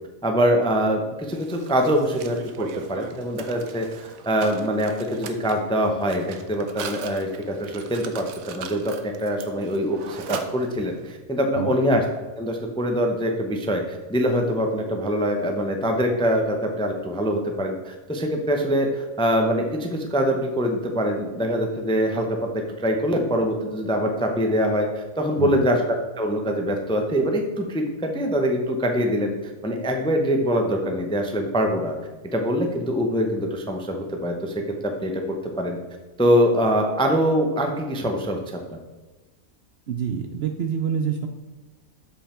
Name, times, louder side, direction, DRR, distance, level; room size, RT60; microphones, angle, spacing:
voice 1, 0.2-12.0 12.4-31.9 32.3-35.8 36.2-38.8, equal, 5° left, 3 dB, 0.5 m, -24 dB
Mechanisms, 1.3-11.1, right 7 dB, 75° right, 1.1 m, -39 dB
voice 2, 39.9-41.3, right 7 dB, 60° right, 5 dB, 0.7 m, -27 dB
7.2 x 5.5 x 4.3 m, 1.2 s
omnidirectional pair, 1.5 m